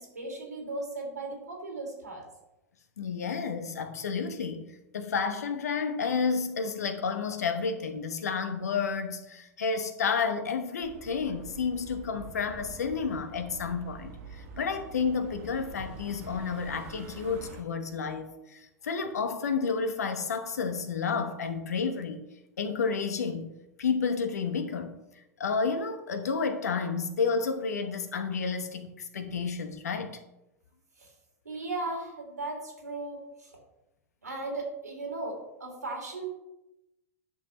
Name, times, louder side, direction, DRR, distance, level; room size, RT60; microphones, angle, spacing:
voice 1, 0.0-2.3 31.0-31.1 31.4-33.5 34.2-36.3, right 2 dB, 85° right, 0 dB, 2.4 m, -37 dB
voice 2, 3.0-22.2 22.6-23.5 23.8-25.0 25.4-30.2, left 5 dB, 75° left, 8 dB, 1.1 m, -31 dB
sound 1, 10.8-17.6, right 3 dB, 55° right, 1.4 m, -46 dB
10.5 x 6.5 x 3.0 m, 0.91 s
figure-of-eight pair, 95°, 9 cm